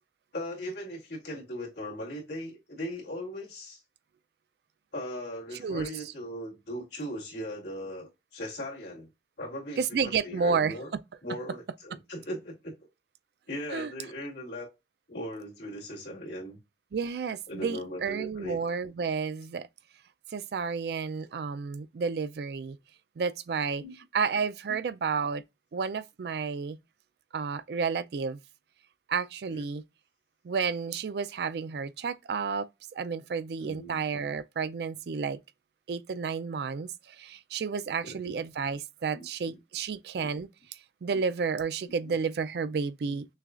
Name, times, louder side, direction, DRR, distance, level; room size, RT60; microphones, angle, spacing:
voice 1, 0.3-3.8 4.9-9.1 9.4-10.9 11.2-12.7 13.5-14.7 15.1-16.6 17.5-18.6 23.8-23.9 29.5-29.6 33.6-34.0 38.0-38.3 39.1-39.6 42.0-42.2 43.1-43.2, equal, 75° left, 2.3 m, -38 dB
voice 2, 9.8-10.7 13.7-13.9 16.9-19.7 20.3-22.8 23.2-23.8 24.1-25.4 25.7-26.8 27.3-28.4 29.1-29.8 30.4-35.4 35.9-43.3, right 5 dB, 65° right, 0.4 m, -31 dB
6.3 x 2.3 x 2.4 m
head